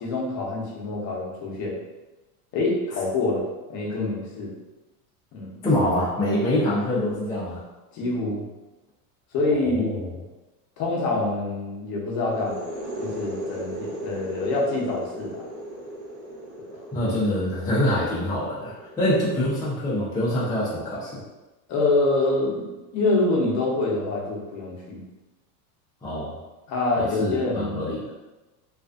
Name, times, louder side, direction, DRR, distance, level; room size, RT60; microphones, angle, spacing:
voice 1, 0.0-1.8 2.5-4.5 5.3-5.5 7.9-8.5 9.3-9.9 10.8-12.6 13.0-15.4 21.7-25.0 26.7-27.8, left 2 dB, 40° left, -3 dB, 0.7 m, -26 dB
voice 2, 5.6-7.6 9.6-10.1 16.9-21.2 26.0-26.4 27.0-28.0, left 1 dB, 10° left, -9 dB, 0.4 m, -25 dB
sound 1, 12.3-19.9, right 1 dB, 55° right, 1.1 m, -37 dB
2.4 x 2.3 x 2.4 m, 1.1 s
supercardioid pair, 125°, 45 cm